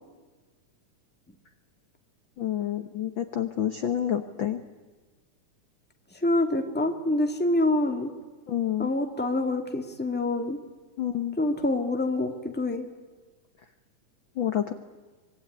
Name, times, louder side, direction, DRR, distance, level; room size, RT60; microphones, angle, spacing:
voice 1, 2.4-4.6 8.5-8.9 11.0-11.4 14.4-14.7, left 10 dB, 80° left, 9 dB, 1.1 m, -28 dB
voice 2, 6.2-8.1 8.8-10.6 11.4-12.8, left 2 dB, 5° left, 5 dB, 0.8 m, -26 dB
25.0 x 22.5 x 9.6 m, 1.3 s
omnidirectional pair, 3.8 m